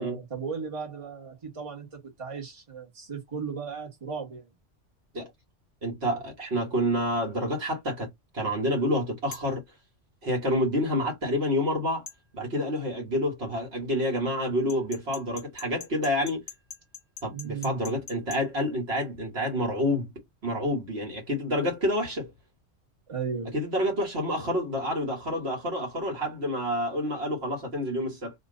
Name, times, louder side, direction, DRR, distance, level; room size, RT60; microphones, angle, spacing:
voice 1, 0.0-4.5 17.3-17.8 23.1-23.6, right 6 dB, 30° right, 1.3 m, -36 dB
voice 2, 5.8-8.1 8.3-9.6 10.2-12.0 12.3-16.4 17.2-20.1 20.4-22.3 23.5-28.3, equal, 60° right, 1.6 m, -28 dB
sound 1, 9.3-9.6 12.1-12.2 14.7-18.4, left 4 dB, 15° left, 1.1 m, -43 dB
2.9 x 2.6 x 3.8 m
omnidirectional pair, 1.2 m